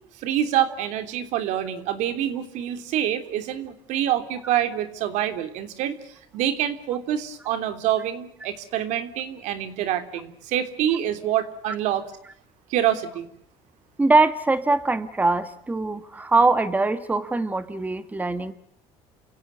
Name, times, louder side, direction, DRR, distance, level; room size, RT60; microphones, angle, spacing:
voice 1, 0.2-5.9 6.3-12.1 12.7-13.3, right 11 dB, 70° right, 9 dB, 3.2 m, -26 dB
voice 2, 14.0-18.5, right 3 dB, 15° right, 11 dB, 1.6 m, -22 dB
29.0 x 16.5 x 9.7 m, 0.76 s
cardioid pair, 115°, 13 cm